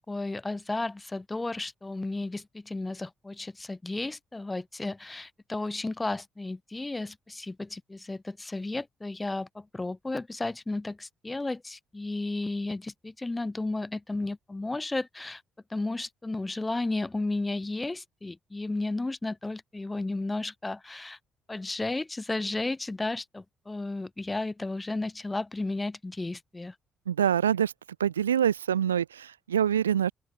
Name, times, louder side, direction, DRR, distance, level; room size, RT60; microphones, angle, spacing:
voice 1, 0.1-15.4 15.7-21.2 21.5-26.7, left 2 dB, 20° left, 0.4 m, -33 dB
voice 2, 27.1-27.7 28.0-30.1, right 9 dB, 90° right, 0.4 m, -25 dB
open air
hypercardioid pair, 45°, 0 cm